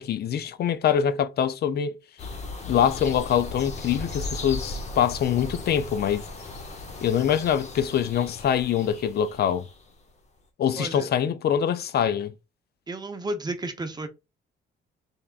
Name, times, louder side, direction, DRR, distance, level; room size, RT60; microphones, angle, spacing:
voice 1, 0.0-2.0 2.7-6.2 7.0-9.7 10.6-12.3, left 9 dB, 55° left, 0.5 m, -24 dB
sound 1, 2.2-9.9, left 2 dB, 35° left, 0.8 m, -37 dB
voice 2, 10.8-11.1 12.9-14.1, right 2 dB, 20° right, 0.7 m, -32 dB
3.6 x 3.4 x 2.4 m
cardioid pair, 90°, 20 cm